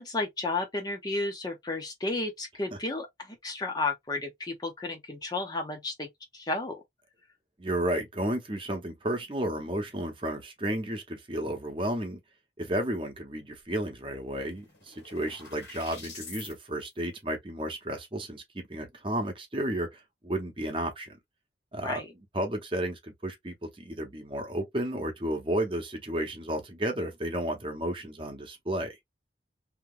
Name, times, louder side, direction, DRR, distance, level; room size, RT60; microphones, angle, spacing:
voice 1, 0.0-6.8 21.8-22.1, left 2 dB, 20° left, 0.6 m, -33 dB
voice 2, 7.6-12.2 12.6-21.1 21.7-29.0, right 1 dB, 30° right, 0.8 m, -32 dB
sound 1, 14.0-16.5, left 5 dB, 75° left, 1.6 m, -47 dB
2.9 x 2.2 x 3.7 m
head